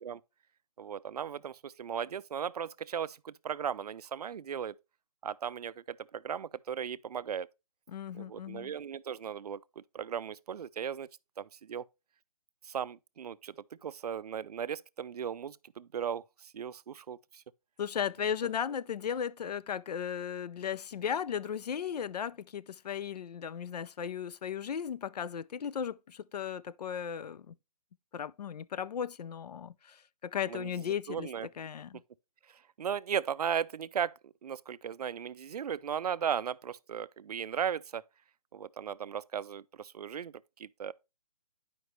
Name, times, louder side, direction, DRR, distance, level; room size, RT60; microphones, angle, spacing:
voice 1, 0.8-4.8 5.2-7.5 8.1-11.1 11.4-11.8 12.6-13.5 13.8-17.4 30.5-31.5 32.5-38.0 38.5-40.9, right 8 dB, 75° right, 0.4 m, -37 dB
voice 2, 7.9-8.7 17.8-27.5 28.1-30.0 30.2-31.3 31.6-32.0, left 8 dB, 85° left, 0.4 m, -36 dB
9.6 x 5.1 x 3.1 m
hypercardioid pair, 175°, 20 cm